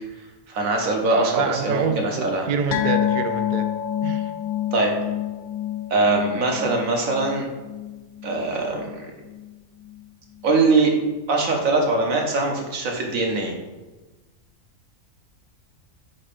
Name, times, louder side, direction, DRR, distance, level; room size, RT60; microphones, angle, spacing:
voice 1, 0.5-2.5 4.7-4.9 5.9-7.4 8.2-9.1 10.4-10.9 11.3-13.5, right 3 dB, 90° right, 1 dB, 1.4 m, -22 dB
voice 2, 1.1-3.7 4.0-4.3, right 6 dB, 55° right, 7 dB, 0.5 m, -26 dB
sound 1, 2.7-9.5 9.8-10.0 10.4-10.5, left 11 dB, 70° left, 0.4 m, -28 dB
4.7 x 4.4 x 4.9 m, 1.2 s
omnidirectional pair, 1.4 m